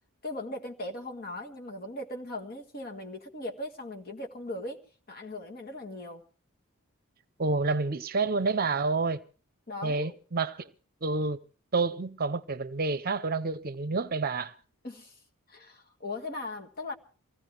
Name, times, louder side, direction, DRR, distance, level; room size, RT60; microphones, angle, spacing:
voice 1, 0.2-4.8 5.1-6.2 9.7-10.1 14.8-15.2 15.5-16.9, left 2 dB, 45° left, 1.9 m, -39 dB
voice 2, 7.4-9.2 9.8-10.7 11.0-11.4 11.7-14.5, right 3 dB, 45° right, 0.7 m, -29 dB
24.5 x 16.5 x 3.3 m
head